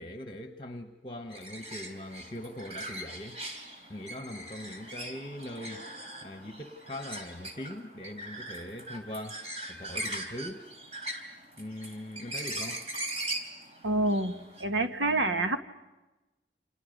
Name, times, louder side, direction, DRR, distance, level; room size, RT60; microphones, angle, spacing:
voice 1, 0.0-3.4 3.9-5.9 6.2-9.4 9.7-10.6 11.6-12.8, left 1 dB, 30° left, 7 dB, 1.1 m, -41 dB
sound 1, 1.3-14.6, right 1 dB, 35° right, 3.5 m, -40 dB
voice 2, 13.8-15.6, right 2 dB, 85° right, 7 dB, 1.7 m, -27 dB
30.0 x 27.5 x 5.3 m, 1.1 s
head